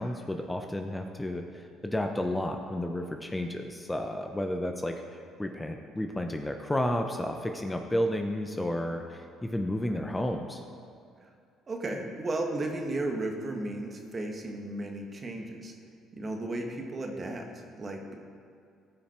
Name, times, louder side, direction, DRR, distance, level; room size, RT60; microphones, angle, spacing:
voice 1, 0.0-10.6, left 1 dB, 15° left, 4 dB, 0.8 m, -32 dB
voice 2, 11.7-15.7 16.1-18.1, right 2 dB, 35° right, 3 dB, 1.6 m, -34 dB
16.5 x 5.7 x 4.5 m, 2.3 s
hypercardioid pair, 65°, 0 cm